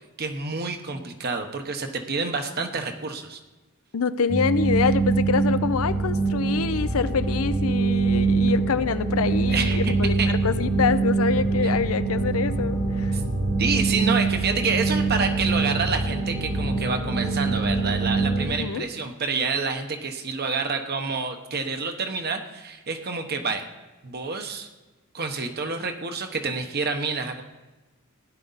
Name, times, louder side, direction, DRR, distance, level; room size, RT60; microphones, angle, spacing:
voice 1, 0.2-3.4 9.5-10.3 13.1-13.2 13.6-23.7 24.0-24.7 25.1-27.4, right 4 dB, 50° right, 5 dB, 1.0 m, -28 dB
voice 2, 3.9-10.1 10.4-13.2 18.5-18.9, left 5 dB, 85° left, 13 dB, 0.6 m, -25 dB
sound 1, 4.3-18.4, right 3 dB, 75° right, 5.2 m, -24 dB
16.5 x 10.5 x 4.1 m, 1.1 s
head